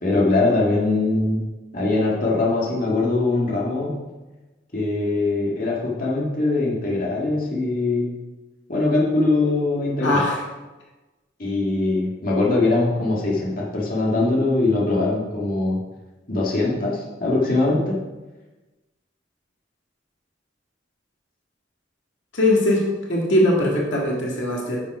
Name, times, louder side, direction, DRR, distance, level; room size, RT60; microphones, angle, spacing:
voice 1, 0.0-1.4 1.7-3.9 4.7-8.1 8.7-10.2 11.4-15.8 16.3-17.9, left 2 dB, 45° left, -4 dB, 2.3 m, -22 dB
voice 2, 10.0-10.4 22.3-22.8 23.1-24.8, left 1 dB, 75° left, -2 dB, 2.1 m, -20 dB
9.8 x 7.4 x 5.0 m, 1.2 s
head